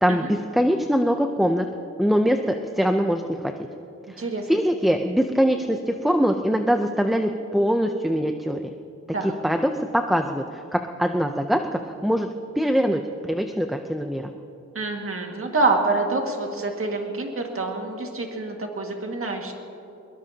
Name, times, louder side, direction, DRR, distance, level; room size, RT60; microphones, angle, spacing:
voice 1, 0.0-1.7 2.0-3.5 4.1-4.2 4.5-8.7 9.2-12.3 12.6-14.3, equal, ahead, 5 dB, 0.6 m, -23 dB
voice 2, 4.2-4.5 9.1-9.3 14.8-19.5, right 3 dB, 45° right, 2 dB, 1.9 m, -26 dB
22.5 x 21.5 x 2.9 m, 2.8 s
wide cardioid pair, 130°, 30 cm